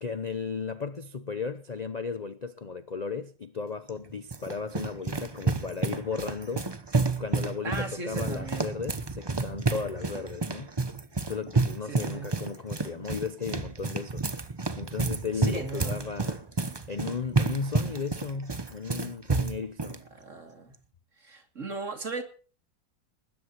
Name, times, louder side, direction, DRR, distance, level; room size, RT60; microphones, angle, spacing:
voice 1, 0.0-6.7 7.2-10.7 11.2-14.2 14.8-16.4 16.9-20.0, left 5 dB, 40° left, 0.6 m, -35 dB
sound 1, 3.9-20.0, right 3 dB, 20° right, 0.7 m, -30 dB
voice 2, 7.6-8.7 11.9-12.3 15.4-16.0 20.1-20.7 21.2-22.2, right 3 dB, 50° right, 3.1 m, -37 dB
23.0 x 20.5 x 3.0 m
omnidirectional pair, 1.8 m